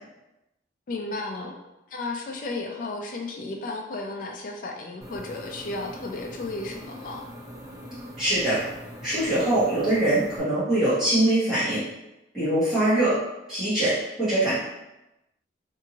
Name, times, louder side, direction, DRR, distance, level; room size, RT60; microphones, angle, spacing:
voice 1, 0.9-1.5 1.9-7.3, left 2 dB, 50° left, 1 dB, 0.3 m, -34 dB
sound 1, 5.0-10.4, equal, 20° right, 0.5 m, -42 dB
voice 2, 8.2-8.6 9.0-11.8 12.3-13.2 13.5-14.6, right 1 dB, ahead, -16 dB, 1.1 m, -23 dB
2.6 x 2.6 x 2.8 m, 0.95 s
head